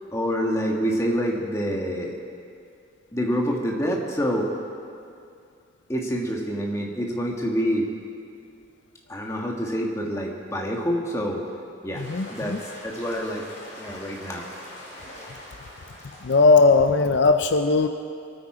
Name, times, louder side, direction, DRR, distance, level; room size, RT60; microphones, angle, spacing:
voice 1, 0.1-2.2 3.1-4.5 5.9-7.9 9.1-11.4 11.8-13.4 13.8-14.5 15.2-15.3, equal, 15° left, -1 dB, 1.5 m, -27 dB
sound 1, 11.9-17.0, left 1 dB, 35° left, 4.5 m, -43 dB
voice 2, 12.0-12.6 16.2-17.9, left 3 dB, 60° left, 7 dB, 0.5 m, -18 dB
23.5 x 8.9 x 4.9 m, 2.4 s
head